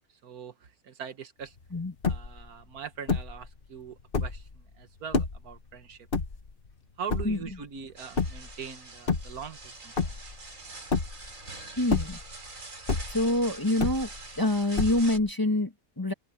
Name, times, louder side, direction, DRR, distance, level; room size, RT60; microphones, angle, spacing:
voice 1, 0.2-1.6 2.1-6.1 7.0-10.3, right 7 dB, 80° right, 1.8 m, -42 dB
sound 1, 1.6-1.7 1.8-2.5 3.1-3.5 4.0-4.5 5.1-5.5 6.1-6.7 7.1-7.6 8.2-8.6 9.0-9.7 10.0-10.5 10.9-11.4 11.8-12.5 12.9-13.4 13.8-14.4 14.8-15.3, left 4 dB, 40° left, 1.4 m, -29 dB
sound 2, 8.0-15.2, right 3 dB, 60° right, 3.5 m, -45 dB
voice 2, 11.8-12.2 13.1-14.1 14.4-16.1, left 1 dB, 15° left, 1.4 m, -26 dB
omnidirectional pair, 1.6 m